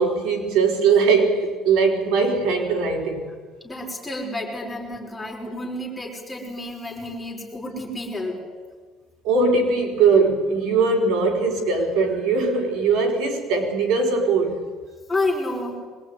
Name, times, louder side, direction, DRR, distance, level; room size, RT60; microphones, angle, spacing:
voice 1, 0.0-3.3 9.2-14.7, right 4 dB, 75° right, 2 dB, 4.2 m, -20 dB
voice 2, 3.6-8.4 15.1-15.8, left 2 dB, 5° left, -2 dB, 5.6 m, -30 dB
23.5 x 21.0 x 9.5 m, 1.5 s
cardioid pair, 160°, 0 cm